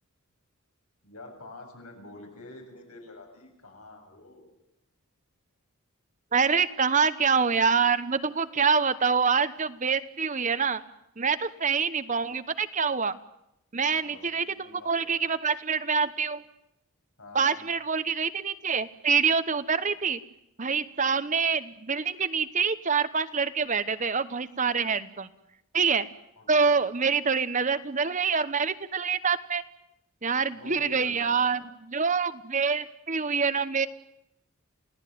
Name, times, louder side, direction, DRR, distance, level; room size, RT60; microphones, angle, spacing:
voice 1, 1.0-4.5 13.9-15.4 17.2-17.6 19.7-19.9 26.4-26.9 30.5-31.5, left 2 dB, 85° left, 2 dB, 7.5 m, -48 dB
voice 2, 6.3-10.8 11.2-13.1 13.7-16.4 17.3-20.2 20.6-25.3 25.7-26.1 26.5-29.6 30.2-31.6 31.9-33.9, right 5 dB, 35° right, 13 dB, 1.0 m, -26 dB
29.0 x 17.0 x 9.4 m, 0.83 s
head